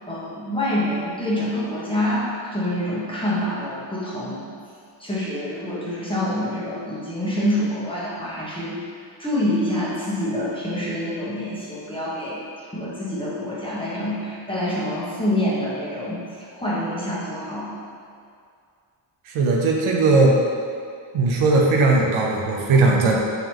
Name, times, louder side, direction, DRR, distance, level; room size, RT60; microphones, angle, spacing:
voice 1, 0.1-4.4 5.0-8.8 9.2-17.8, left 1 dB, 10° left, -8 dB, 1.2 m, -26 dB
voice 2, 19.3-20.4 21.1-23.2, right 3 dB, 85° right, -1 dB, 0.7 m, -18 dB
3.9 x 3.4 x 3.0 m, 2.3 s
cardioid pair, 70°, 48 cm